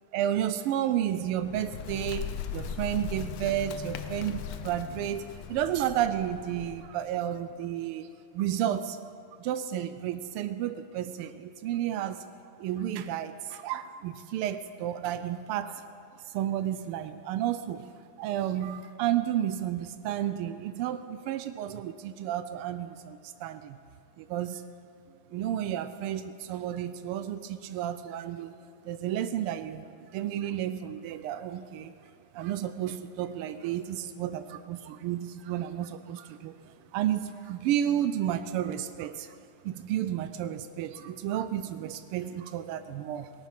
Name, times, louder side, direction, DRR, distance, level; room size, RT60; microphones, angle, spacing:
voice 1, 0.1-8.1 8.3-9.0 9.4-12.2 12.6-15.8 16.2-17.9 18.2-23.8 24.2-24.6 25.3-28.5 28.8-31.9 32.3-39.4 39.6-43.3, right 11 dB, 90° right, 11 dB, 1.5 m, -32 dB
Bird, 1.2-7.0, left 8 dB, 80° left, 1.6 m, -39 dB
18.5 x 11.0 x 5.9 m, 2.5 s
omnidirectional pair, 2.4 m